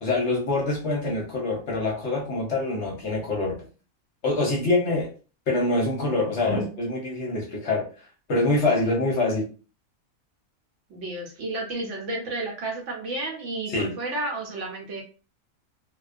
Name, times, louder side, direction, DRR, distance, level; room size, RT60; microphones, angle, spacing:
voice 1, 0.0-3.7 4.2-5.1 5.5-9.5 13.7-13.9, left 2 dB, 60° left, -2 dB, 0.9 m, -25 dB
voice 2, 10.9-15.0, right 2 dB, 65° right, -1 dB, 0.8 m, -32 dB
2.3 x 2.2 x 2.4 m, 0.36 s
omnidirectional pair, 1.6 m